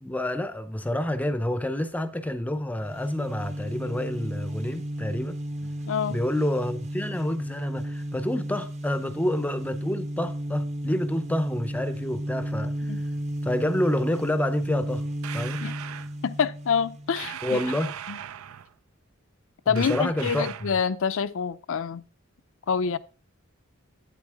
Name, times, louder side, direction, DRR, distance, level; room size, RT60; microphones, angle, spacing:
voice 1, 0.0-5.7 6.1-12.9 13.4-15.0 15.3-15.6 17.4-17.9 19.7-20.7, left 1 dB, 5° left, 0.6 m, -28 dB
sound 1, 2.8-17.3, equal, 35° right, 0.9 m, -33 dB
voice 2, 5.9-6.2 12.9-13.0 15.6-15.7 16.2-17.6 18.1-18.2 19.7-22.0 22.7-23.0, left 6 dB, 65° left, 0.5 m, -26 dB
sound 2, 15.2-16.1 17.2-18.7 19.7-20.8, right 10 dB, 80° right, 0.5 m, -38 dB
8.8 x 8.4 x 3.5 m
head